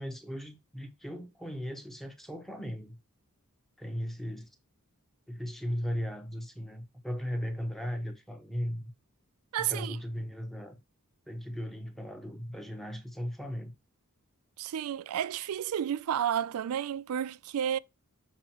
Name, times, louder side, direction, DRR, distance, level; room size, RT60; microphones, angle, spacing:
voice 1, 0.0-3.0 3.8-4.5 5.3-8.9 9.6-10.8 11.3-13.7, equal, ahead, 1.1 m, -37 dB
voice 2, 9.5-10.0 14.6-17.8, right 9 dB, 70° right, 0.3 m, -31 dB
7.1 x 4.9 x 2.9 m
head